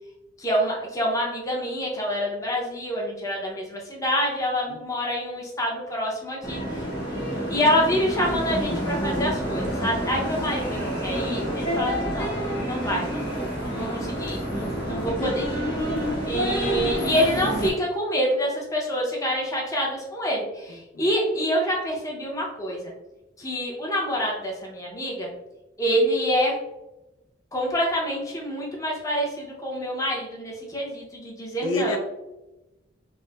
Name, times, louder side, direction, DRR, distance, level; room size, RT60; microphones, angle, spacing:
voice 1, 0.4-15.4 16.3-22.9 23.4-25.3 25.8-26.5 27.5-32.0, equal, 15° left, -2 dB, 0.6 m, -27 dB
sound 1, 6.4-17.7, equal, 65° left, 1.1 m, -28 dB
voice 2, 14.9-15.5 20.7-21.1 31.6-32.0, left 2 dB, 85° left, 4 dB, 0.4 m, -31 dB
4.3 x 2.0 x 2.3 m, 0.99 s
head